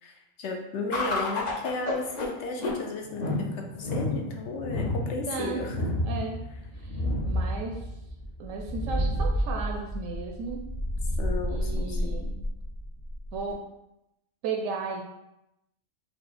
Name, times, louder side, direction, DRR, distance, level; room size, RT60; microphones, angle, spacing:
voice 1, 0.0-5.9 11.2-12.2, left 3 dB, 65° left, 2 dB, 0.9 m, -34 dB
sound 1, 0.9-13.5, left 1 dB, 45° left, 0.6 m, -30 dB
voice 2, 5.3-6.4 6.8-7.9 8.4-10.6 11.5-12.5 13.3-13.6 14.4-15.0, right 4 dB, 80° right, 1 dB, 1.0 m, -35 dB
4.6 x 2.4 x 4.1 m, 0.88 s
omnidirectional pair, 1.4 m